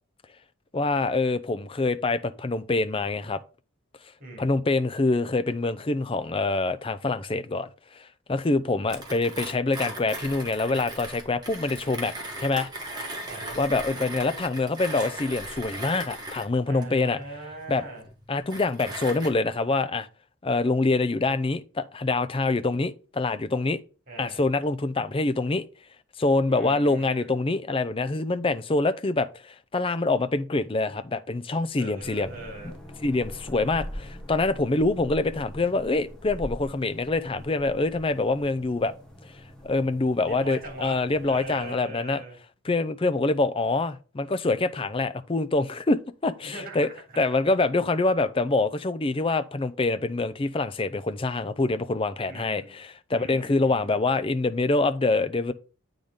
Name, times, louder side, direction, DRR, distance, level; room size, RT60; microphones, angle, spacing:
voice 1, 0.7-3.4 4.4-12.7 13.6-17.2 17.7-17.8 18.3-20.1 20.4-23.8 24.2-25.7 26.2-32.3 33.0-38.9 39.6-42.2 42.7-46.9 47.2-55.5, left 3 dB, 25° left, 0.4 m, -25 dB
voice 2, 4.2-4.5 13.3-13.6 16.6-18.0 24.1-24.5 26.5-27.3 31.8-32.8 40.2-42.4 46.4-47.3 52.2-52.7 53.1-54.0, right 2 dB, 40° right, 3.3 m, -41 dB
Mechanisms, 8.9-19.3, right 1 dB, 20° right, 1.5 m, -38 dB
sound 1, 32.0-41.7, equal, 5° left, 1.2 m, -43 dB
8.7 x 4.0 x 5.1 m
head